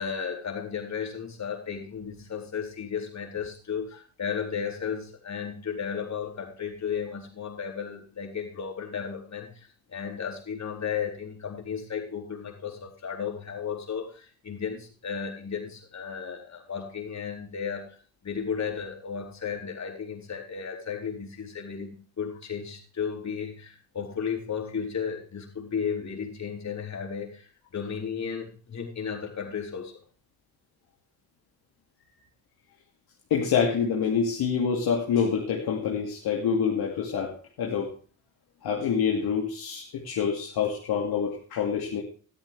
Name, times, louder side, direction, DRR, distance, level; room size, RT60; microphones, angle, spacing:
voice 1, 0.0-18.0 18.2-30.0, left 7 dB, 40° left, 1 dB, 4.3 m, -34 dB
voice 2, 33.3-37.3 37.6-37.9 38.6-42.0, left 6 dB, 60° left, -2 dB, 2.7 m, -26 dB
13.0 x 13.0 x 3.6 m, 0.40 s
hypercardioid pair, 45°, 42 cm